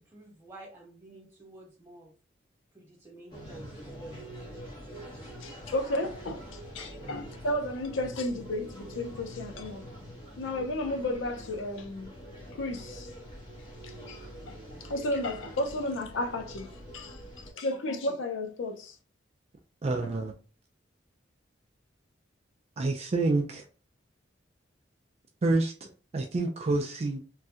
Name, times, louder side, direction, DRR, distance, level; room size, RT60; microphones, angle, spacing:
voice 1, 0.0-2.1 2.7-4.3 15.1-15.2, right 1 dB, 15° right, 1.4 m, -50 dB
sound 1, 3.3-17.5, equal, 25° left, 1.2 m, -45 dB
voice 2, 5.4-6.5 6.7-9.8 10.4-12.1 12.5-13.1 13.8-17.2 17.5-19.0, left 1 dB, 90° left, 0.5 m, -33 dB
voice 3, 19.8-20.3 22.8-23.6 25.4-25.7 26.1-27.2, right 2 dB, 35° right, 0.3 m, -27 dB
3.1 x 2.6 x 2.4 m
head